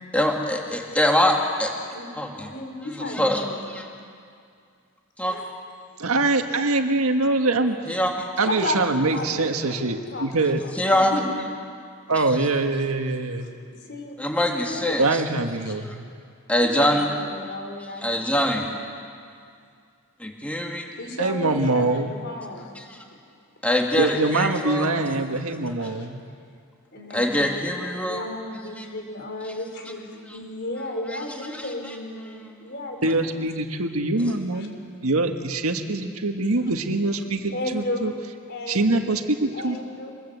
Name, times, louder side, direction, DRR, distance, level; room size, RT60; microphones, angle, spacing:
voice 1, 0.1-1.7 2.2-2.5 3.1-3.8 5.2-5.4 7.9-8.3 10.7-11.1 14.2-15.2 16.5-17.1 18.0-18.7 20.2-20.9 22.8-23.0 23.6-24.9 27.1-28.2 28.8-28.9 31.5-31.9, left 1 dB, 5° left, 1 dB, 2.5 m, -24 dB
voice 2, 2.4-3.8 5.3-5.5 8.4-11.3 13.3-14.2 14.5-15.0 15.3-15.8 16.7-18.9 21.0-22.8 23.1-23.2 25.6-26.1 26.9-27.7 28.0-33.3 34.5-34.7 37.5-38.2 38.5-39.1 39.5-40.1, left 2 dB, 50° left, 3 dB, 4.2 m, -34 dB
voice 3, 6.0-7.8 8.4-10.6 12.1-13.5 15.0-16.1 21.2-22.1 24.0-26.2 33.0-34.7 35.0-38.1 38.7-39.8, right 2 dB, 85° right, 5 dB, 1.7 m, -24 dB
27.0 x 21.0 x 8.2 m, 2.3 s
head